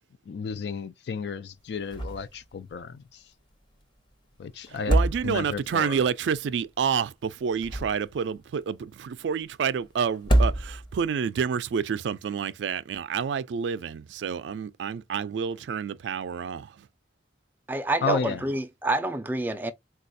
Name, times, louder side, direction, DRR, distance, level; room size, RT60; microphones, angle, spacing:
voice 1, 0.3-3.2 4.4-5.0 5.2-6.0 18.0-18.5, left 4 dB, 70° left, 0.4 m, -32 dB
sound 1, 1.9-2.4 2.7-2.8 4.7-5.7 7.4-8.3 10.1-11.1, right 1 dB, 25° left, 0.7 m, -25 dB
voice 2, 4.7-16.9, right 7 dB, 90° right, 0.3 m, -29 dB
voice 3, 17.7-19.7, right 2 dB, 10° right, 0.4 m, -28 dB
4.1 x 2.3 x 2.6 m
head